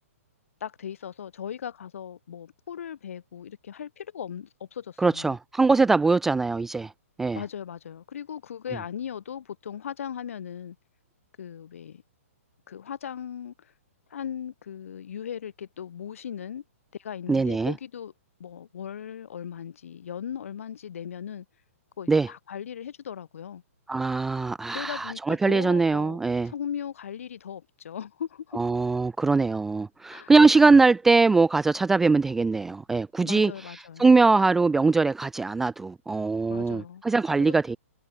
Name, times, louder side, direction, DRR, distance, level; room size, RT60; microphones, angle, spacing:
voice 1, 0.6-5.4 7.3-10.8 11.4-12.0 12.7-13.7 14.1-16.6 17.0-18.1 18.4-21.4 22.0-23.6 24.7-26.2 26.4-28.6 30.1-30.3 33.2-34.1 36.5-37.0 37.4-37.6, left 8 dB, 65° left, 2.7 m, -38 dB
voice 2, 5.0-6.9 7.2-7.4 17.3-17.7 22.1-22.3 23.9-26.5 28.6-33.5 34.0-37.8, right 3 dB, 5° right, 0.3 m, -21 dB
hypercardioid pair, 170°, 8 cm